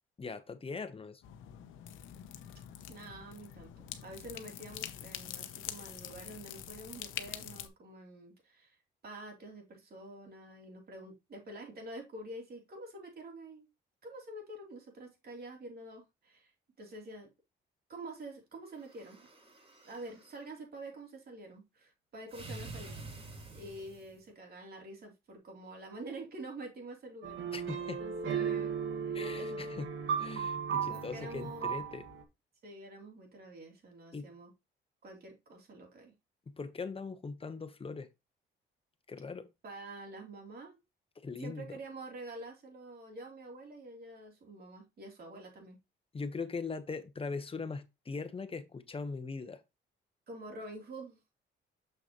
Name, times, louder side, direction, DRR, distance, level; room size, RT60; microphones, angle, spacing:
voice 1, 0.2-1.2 27.5-28.0 29.1-32.1 34.1-34.3 36.5-38.1 39.1-39.5 41.2-41.8 46.1-49.6, left 4 dB, 30° left, 1.0 m, -40 dB
sound 1, 1.2-7.7, left 11 dB, 90° left, 0.9 m, -45 dB
voice 2, 2.9-3.7 4.0-8.8 9.0-13.7 14.0-16.5 16.8-17.3 17.9-19.3 19.8-23.0 23.5-27.4 28.0-29.6 30.9-31.8 32.6-34.5 35.0-36.1 39.6-40.8 41.4-45.8 50.3-51.2, right 2 dB, 50° right, 3.3 m, -47 dB
sound 2, 18.7-20.4 22.3-24.2, right 3 dB, 30° right, 3.1 m, -48 dB
sound 3, 27.2-32.2, right 7 dB, 70° right, 1.7 m, -35 dB
6.8 x 6.2 x 3.0 m
cardioid pair, 90°, 20 cm